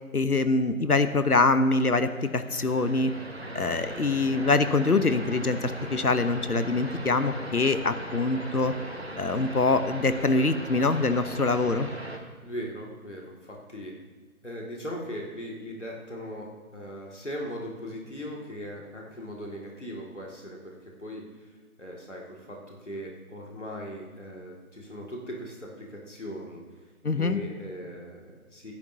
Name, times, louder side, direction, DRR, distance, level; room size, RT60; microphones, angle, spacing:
voice 1, 0.1-3.1 3.5-8.7 9.2-11.9 27.0-27.4, left 3 dB, 85° left, 11 dB, 1.0 m, -24 dB
sound 1, 2.2-12.2, right 1 dB, 45° right, 1.1 m, -39 dB
voice 2, 12.4-13.9 14.4-16.5 16.7-20.7 21.0-21.2 21.8-26.6 27.2-28.7, equal, 55° left, -2 dB, 2.2 m, -39 dB
20.0 x 10.5 x 2.7 m, 1.3 s
figure-of-eight pair, 170°, 44 cm